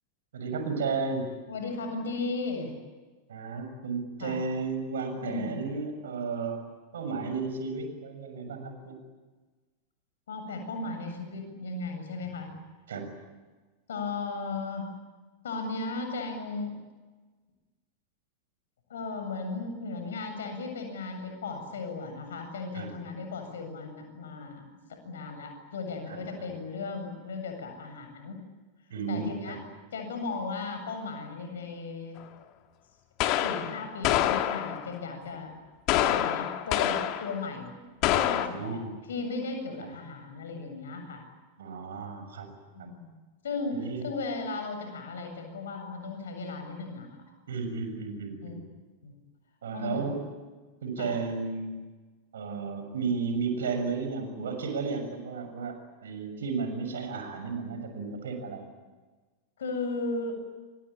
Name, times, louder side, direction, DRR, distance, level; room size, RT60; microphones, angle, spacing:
voice 1, 0.3-1.3 3.3-6.6 6.9-9.0 12.9-13.1 22.7-22.9 26.1-26.5 28.9-29.6 38.4-38.9 39.8-39.9 41.6-42.5 42.8-42.9 43.7-44.0 47.5-48.6 49.6-50.2 50.8-51.7 52.3-55.8 56.0-58.7, right 4 dB, 65° right, 6 dB, 6.7 m, -33 dB
voice 2, 1.5-2.7 4.2-4.4 5.1-5.5 10.3-12.5 13.9-14.9 15.4-16.8 18.9-24.6 24.9-28.4 29.1-29.6 29.9-32.2 33.4-35.5 36.1-37.7 38.1-38.8 39.1-41.2 42.7-43.1 43.4-47.1 48.4-48.5 49.0-49.1 49.7-50.1 51.0-51.2 59.6-60.4, left 3 dB, 65° left, 6 dB, 7.7 m, -36 dB
sound 1, 32.2-32.3 33.2-35.0 35.9-37.4 38.0-38.5, left 12 dB, 40° left, 2.0 m, -26 dB
28.0 x 24.0 x 8.7 m, 1.3 s
figure-of-eight pair, 90°, 0 cm